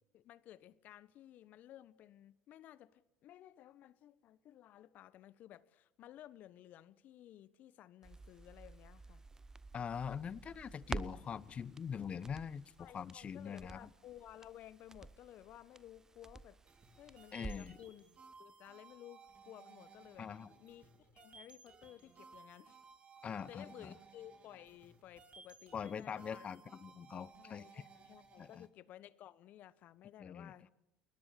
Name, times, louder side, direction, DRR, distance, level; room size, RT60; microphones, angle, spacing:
voice 1, 0.1-9.2 12.8-16.6 17.0-18.0 18.4-20.3 20.6-22.8 23.2-26.5 27.3-30.7, left 12 dB, 55° left, 1.2 m, -56 dB
Crackle, 8.0-17.8 18.1-18.2, right 3 dB, 15° right, 0.9 m, -50 dB
voice 2, 9.7-13.9 17.3-17.8 20.2-20.5 23.2-23.9 25.7-27.8 28.4-28.7 30.2-30.5, left 7 dB, 35° left, 0.9 m, -43 dB
sound 1, 16.7-28.7, right 4 dB, 35° right, 4.0 m, -60 dB
30.0 x 21.0 x 7.0 m
hypercardioid pair, 70°, 3 cm